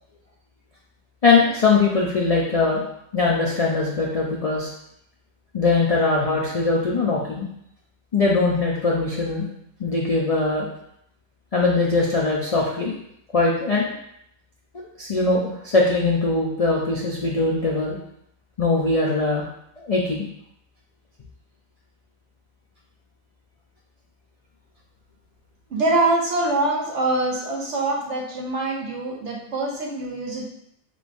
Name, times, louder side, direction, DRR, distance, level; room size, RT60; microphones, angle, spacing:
voice 1, 1.2-2.8 3.1-4.7 5.5-7.5 8.1-9.5 9.8-10.7 11.5-12.9 13.3-13.9 14.7-18.0 18.6-19.5 19.8-20.3, left 3 dB, 65° left, -3 dB, 0.3 m, -21 dB
voice 2, 25.7-30.5, right 2 dB, 60° right, -1 dB, 1.2 m, -24 dB
5.0 x 3.4 x 2.5 m, 0.74 s
omnidirectional pair, 1.4 m